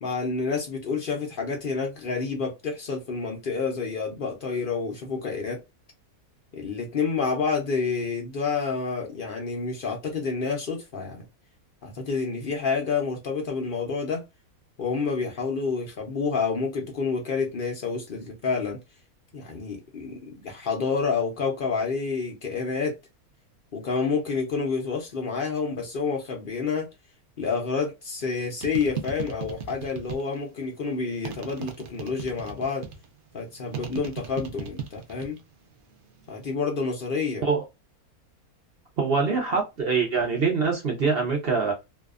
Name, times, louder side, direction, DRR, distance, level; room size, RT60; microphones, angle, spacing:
voice 1, 0.0-5.6 6.5-11.3 11.8-14.2 14.8-18.8 19.3-23.0 23.7-26.9 27.4-32.9 33.3-35.4 36.3-37.4, left 5 dB, 65° left, 0.5 m, -29 dB
sound 1, 28.6-30.5 31.2-33.1 33.7-35.4 35.7-36.3, right 7 dB, 75° right, 0.5 m, -36 dB
voice 2, 39.0-41.7, right 5 dB, 50° right, 0.8 m, -24 dB
2.6 x 2.3 x 2.3 m
omnidirectional pair, 1.6 m